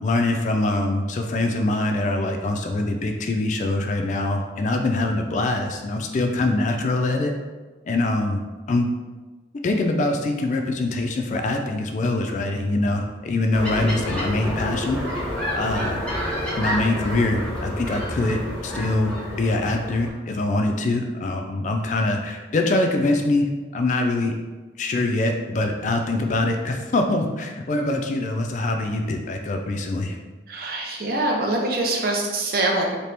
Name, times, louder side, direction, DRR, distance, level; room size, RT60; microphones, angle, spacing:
voice 1, 0.0-7.3 7.9-8.4 8.7-8.9 9.6-15.2 15.5-16.0 16.6-24.3 24.8-30.2, left 2 dB, 40° left, 4 dB, 0.3 m, -24 dB
sound 1, 13.5-20.1, equal, 5° left, 0.7 m, -29 dB
voice 2, 30.5-33.0, right 2 dB, 55° right, 0 dB, 0.6 m, -24 dB
2.9 x 2.8 x 3.3 m, 1.3 s
head